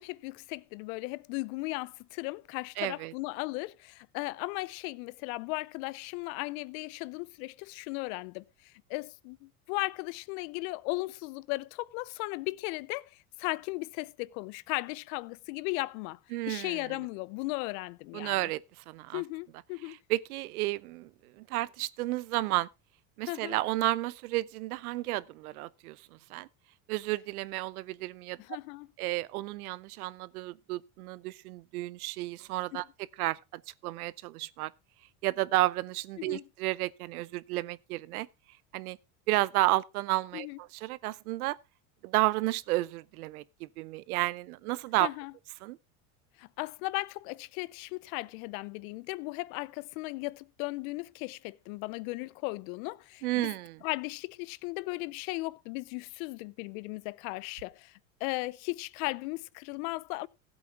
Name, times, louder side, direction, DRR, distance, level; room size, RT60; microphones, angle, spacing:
voice 1, 0.0-16.2 16.5-18.5 19.1-20.0 23.3-23.6 28.4-28.9 32.7-32.8 36.2-36.4 40.3-40.6 45.0-45.3 46.4-53.5 53.8-60.3, left 23 dB, 70° left, 0.7 m, -36 dB
voice 2, 2.8-3.1 16.3-17.0 18.1-19.2 19.8-22.7 23.2-26.5 26.9-28.4 29.0-32.9 33.2-34.7 35.2-38.3 38.7-39.0 39.3-41.6 42.0-45.1 45.6-45.8 53.2-53.8, right 18 dB, 85° right, 0.7 m, -32 dB
15.5 x 8.2 x 3.6 m
supercardioid pair, 95°, 43 cm